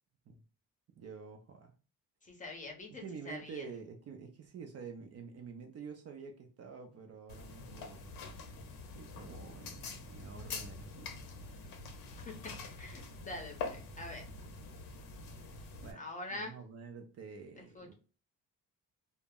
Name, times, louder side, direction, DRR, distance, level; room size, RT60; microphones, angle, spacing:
voice 1, 1.0-1.7 2.9-8.4 8.9-11.3 15.8-17.9, right 5 dB, 45° right, 0.4 m, -48 dB
voice 2, 2.2-3.6 12.2-12.3 12.6-14.2 16.0-16.6 17.6-17.9, left 2 dB, 20° left, 0.6 m, -45 dB
sound 1, 7.3-15.9, left 4 dB, 70° left, 0.6 m, -45 dB
2.0 x 2.0 x 3.4 m
cardioid pair, 145°, 35 cm